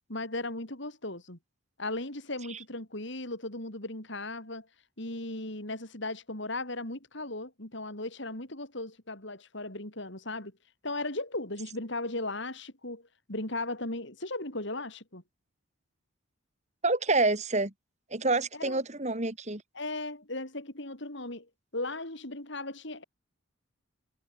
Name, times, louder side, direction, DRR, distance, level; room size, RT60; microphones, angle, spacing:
voice 1, 0.1-1.4 1.8-4.7 5.0-10.5 10.8-15.2 18.5-18.8 19.7-21.5 21.7-23.0, left 2 dB, 60° left, 4.5 m, -37 dB
voice 2, 16.8-17.7 18.1-19.6, right 3 dB, 35° right, 3.0 m, -27 dB
head